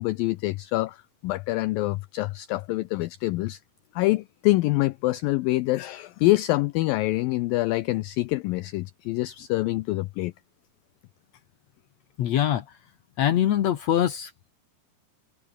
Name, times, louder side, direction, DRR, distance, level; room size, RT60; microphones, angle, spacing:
voice 1, 0.0-3.6 4.0-10.3, left 19 dB, 85° left, 2.0 m, -26 dB
voice 2, 12.2-12.6 13.2-14.5, left 11 dB, 65° left, 1.7 m, -23 dB
omnidirectional pair, 4.7 m